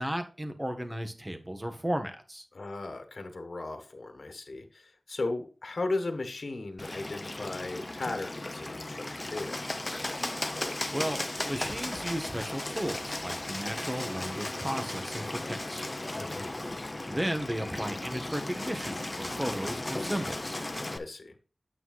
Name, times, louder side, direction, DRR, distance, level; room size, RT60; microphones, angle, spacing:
voice 1, 0.0-2.4 10.9-15.8 17.1-20.6, equal, 15° right, 7 dB, 1.3 m, -34 dB
voice 2, 2.5-9.6 16.1-16.6 20.9-21.3, left 2 dB, 65° left, 5 dB, 1.4 m, -36 dB
Bird, 6.8-21.0, left 2 dB, 30° left, 0.8 m, -36 dB
9.0 x 8.1 x 2.4 m, 0.35 s
wide cardioid pair, 80°, 0 cm